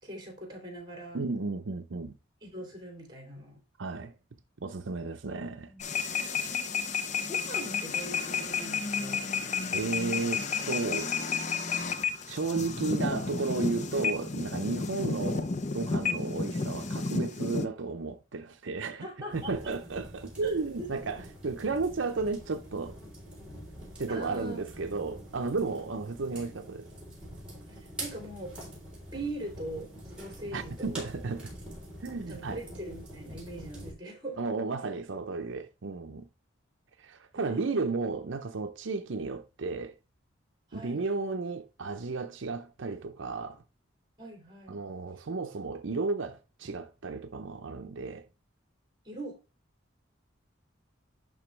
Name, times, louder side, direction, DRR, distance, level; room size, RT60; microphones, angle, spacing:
voice 1, 0.0-1.2 2.4-3.6 5.3-5.8 6.1-6.5 7.3-9.3 19.0-19.6 20.4-20.5 20.8-20.9 24.1-25.0 27.7-28.6 29.1-31.1 32.2-34.4 37.3-37.9 40.7-41.1 44.2-44.8 49.0-49.4, right 1 dB, 20° right, 3.1 m, -42 dB
voice 2, 1.1-2.1 3.8-4.1 4.6-6.4 9.7-11.1 12.3-19.1 19.3-23.0 24.0-26.9 30.5-31.5 32.0-32.6 34.4-36.3 37.0-39.9 40.7-43.6 44.7-48.2, right 3 dB, 70° right, 0.6 m, -33 dB
sound 1, 5.8-17.7, left 5 dB, 35° left, 0.6 m, -32 dB
sound 2, 19.3-33.9, right 1 dB, 5° right, 3.7 m, -45 dB
11.0 x 3.8 x 3.3 m
head